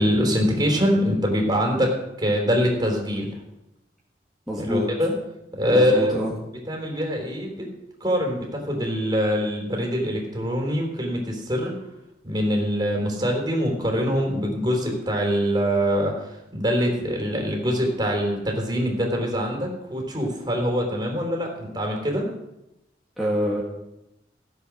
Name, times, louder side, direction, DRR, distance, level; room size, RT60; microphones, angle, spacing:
voice 1, 0.0-3.3 4.6-5.1 5.5-6.1 6.7-7.7 8.0-11.7 12.2-22.3, equal, 25° right, 0 dB, 3.8 m, -24 dB
voice 2, 4.5-4.8 5.7-6.3 23.2-23.6, equal, ahead, -7 dB, 2.1 m, -25 dB
15.5 x 8.2 x 6.3 m, 0.89 s
head